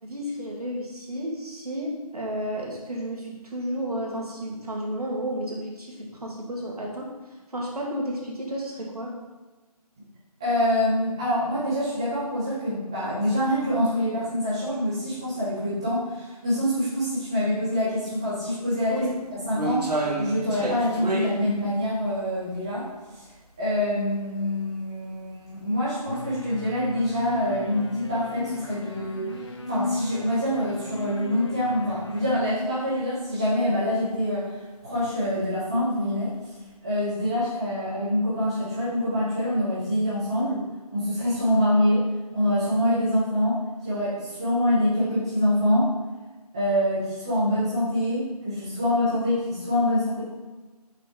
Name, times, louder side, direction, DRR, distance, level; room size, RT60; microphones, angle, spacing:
voice 1, 0.0-7.1 7.5-9.1 18.9-19.1, right 1 dB, 70° right, -2 dB, 2.0 m, -32 dB
voice 2, 10.4-22.9 23.1-23.3 23.6-36.3 36.8-40.6 40.9-42.0 42.3-45.9 46.5-50.2, left 1 dB, 10° right, -12 dB, 0.7 m, -25 dB
sound 1, 18.2-18.3 18.8-23.8 24.2-24.3 25.0-25.2 25.5-25.6 26.5-26.6 26.9-27.1 27.6-27.8 28.1-28.2 30.3-30.4 31.7-32.0 32.4-32.8 33.2-33.4 33.7-33.8 34.8-35.0 35.7-36.4 36.7-36.8, right 2 dB, 85° right, 1.3 m, -30 dB
sound 2, 26.1-32.5, left 3 dB, 45° left, 0.5 m, -35 dB
6.1 x 5.7 x 3.6 m, 1.2 s
figure-of-eight pair, 170°, 20 cm